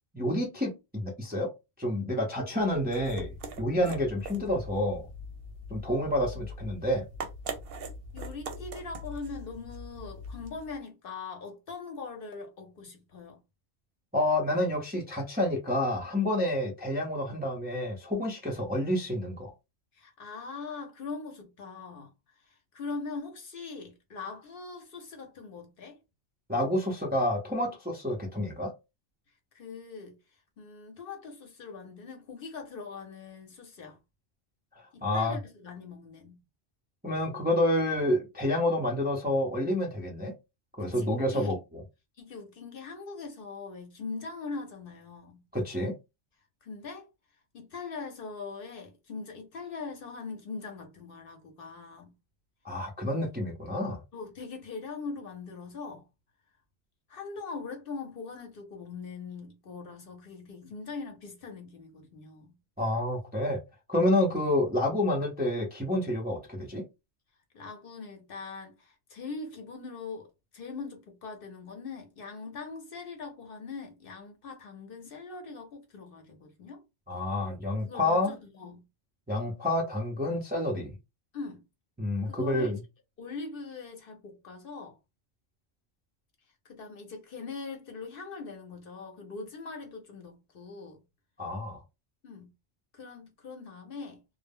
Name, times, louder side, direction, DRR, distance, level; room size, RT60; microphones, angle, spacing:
voice 1, 0.1-1.5 1.8-3.3 3.6-5.1 5.7-7.0 14.1-19.5 26.5-28.7 35.0-35.3 37.0-40.3 40.8-41.8 45.5-45.9 52.6-54.0 62.8-63.6 63.9-66.8 77.1-78.4 79.3-80.9 82.0-82.8 91.4-91.8, left 1 dB, 15° right, 0.4 m, -29 dB
sound 1, 2.6-10.8, equal, 65° right, 0.7 m, -42 dB
voice 2, 5.8-6.4 8.1-13.4 19.9-22.1 22.4-26.0 29.5-30.2 30.6-34.0 34.9-36.4 40.8-41.6 42.2-45.4 46.6-47.1 47.5-52.1 54.1-56.1 57.1-62.6 64.1-64.3 67.5-76.8 77.7-78.9 81.3-81.6 82.3-82.8 83.2-85.0 86.6-91.0 92.2-92.5 92.9-94.2, left 4 dB, 60° left, 0.8 m, -41 dB
2.0 x 2.0 x 3.5 m
omnidirectional pair, 1.2 m